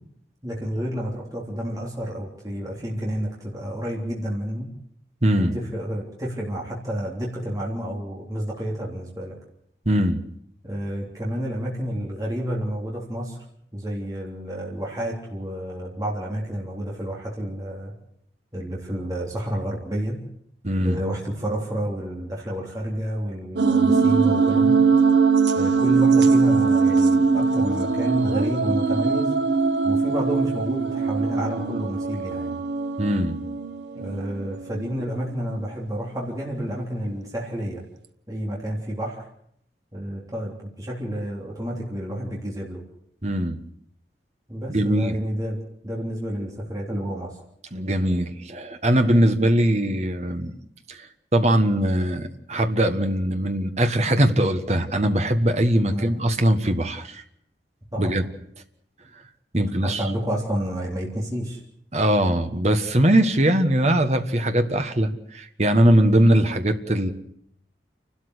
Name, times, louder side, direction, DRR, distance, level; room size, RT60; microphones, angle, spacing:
voice 1, 0.4-4.7 5.3-9.3 10.6-13.4 13.7-17.9 18.5-20.2 20.8-24.9 25.5-29.4 29.8-32.6 33.9-37.8 38.3-39.2 39.9-42.8 44.5-47.3 55.9-56.1 57.9-58.1 59.5-61.6, equal, 20° right, -3 dB, 3.4 m, -30 dB
voice 2, 5.2-5.5 9.8-10.3 20.6-21.0 33.0-33.4 43.2-43.6 44.7-45.2 47.7-50.5 50.9-51.1 51.3-57.2 58.0-58.2 59.5-60.0 61.9-67.1, right 1 dB, 40° right, 7 dB, 1.5 m, -21 dB
sound 1, 23.6-35.0, right 4 dB, 85° right, 1.1 m, -21 dB
29.5 x 13.0 x 8.1 m, 0.72 s
head